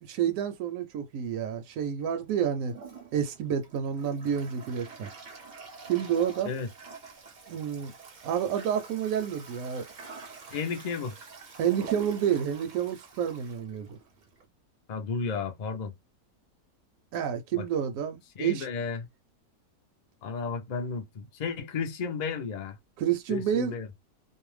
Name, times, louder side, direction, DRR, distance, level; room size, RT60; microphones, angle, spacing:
voice 1, 0.0-2.8 3.1-5.1 5.9-6.5 7.5-7.9 8.2-9.8 11.6-14.0 17.1-18.7 23.0-23.7, right 8 dB, 70° right, 0.9 m, -29 dB
Toilet flush, 2.6-14.4, right 5 dB, 50° right, 0.6 m, -47 dB
voice 2, 10.5-11.1 14.9-15.9 17.5-17.7 18.4-19.1 20.2-22.8 23.3-23.9, left 5 dB, 55° left, 0.4 m, -33 dB
2.6 x 2.1 x 3.1 m
omnidirectional pair, 1.5 m